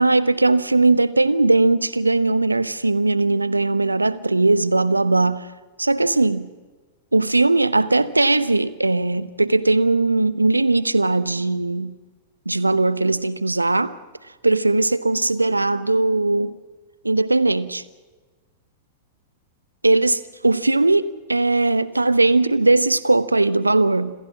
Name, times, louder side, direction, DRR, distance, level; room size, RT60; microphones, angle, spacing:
voice 1, 0.0-5.5 5.8-6.5 7.1-11.9 12.5-14.0 14.4-16.6 17.0-17.8 19.8-24.1, right 2 dB, 90° right, 0.9 m, -19 dB
27.0 x 15.5 x 7.5 m
figure-of-eight pair, 100°, 0 cm